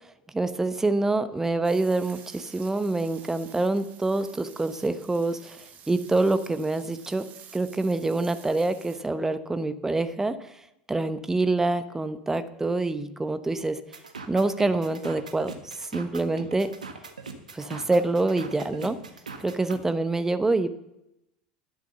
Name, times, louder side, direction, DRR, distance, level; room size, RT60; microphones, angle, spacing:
voice 1, 0.3-10.6 10.9-13.8 14.3-16.7 17.5-19.0 19.4-20.7, right 2 dB, 10° right, 11 dB, 1.1 m, -26 dB
sound 1, 1.6-9.0, right 8 dB, 40° right, 1.8 m, -50 dB
sound 2, 13.9-19.8, right 4 dB, 80° right, 1.4 m, -41 dB
11.5 x 10.5 x 6.8 m, 0.87 s
figure-of-eight pair, 75°, 4 cm